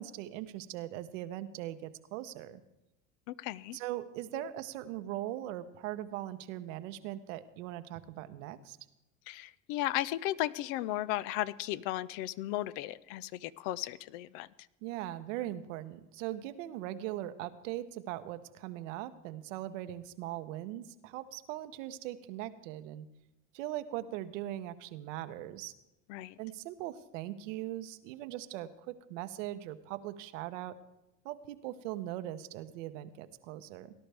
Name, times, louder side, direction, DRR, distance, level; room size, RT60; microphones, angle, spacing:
voice 1, 0.0-2.6 3.7-8.8 14.8-23.0 23.5-25.7 26.4-30.7 31.2-33.9, right 13 dB, 80° right, 11 dB, 0.9 m, -40 dB
voice 2, 3.3-3.8 4.3-4.4 9.3-14.5 26.1-26.4, left 15 dB, 70° left, 19 dB, 0.6 m, -35 dB
18.0 x 11.5 x 3.4 m, 0.93 s
supercardioid pair, 95°, 38 cm